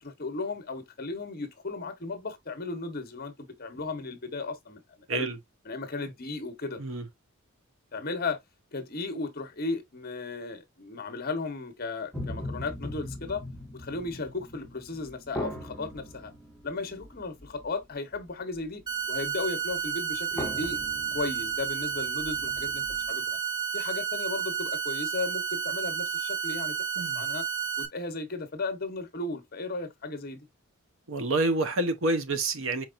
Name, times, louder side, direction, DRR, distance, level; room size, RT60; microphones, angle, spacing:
voice 1, 0.0-4.8 5.1-5.3 5.6-6.8 7.9-8.4 8.7-13.4 13.7-16.3 16.6-18.8 19.1-20.8 21.1-23.4 23.7-26.7 27.1-27.4 27.8-30.4, left 3 dB, 45° left, 1.1 m, -35 dB
sound 1, 12.1-18.3 18.5-18.7 19.3-19.4 19.7-19.9 20.1-23.1, left 1 dB, 5° left, 1.0 m, -40 dB
sound 2, 18.9-27.9, right 8 dB, 20° right, 0.6 m, -31 dB
voice 2, 31.1-32.8, right 2 dB, 60° right, 0.8 m, -28 dB
4.5 x 4.4 x 2.5 m
head